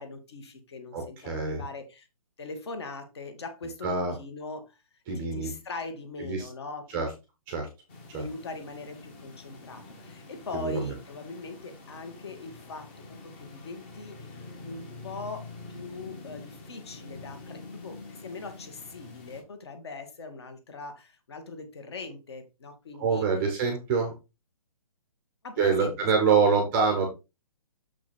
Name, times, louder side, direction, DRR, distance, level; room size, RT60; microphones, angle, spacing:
voice 1, 0.0-2.1 2.4-4.8 5.2-7.1 8.1-23.3 25.4-26.5, left 3 dB, 45° left, 7 dB, 2.0 m, -41 dB
voice 2, 0.9-1.6 3.8-4.1 5.1-5.5 6.2-6.5 6.9-7.1 7.5-7.7 8.1-8.3 10.5-10.9 23.0-24.1 25.6-27.1, right 5 dB, 10° right, 4 dB, 0.8 m, -25 dB
sound 1, 7.9-19.4, left 3 dB, 15° left, 1.1 m, -46 dB
6.6 x 5.6 x 4.3 m, 0.26 s
hypercardioid pair, 175°, 19 cm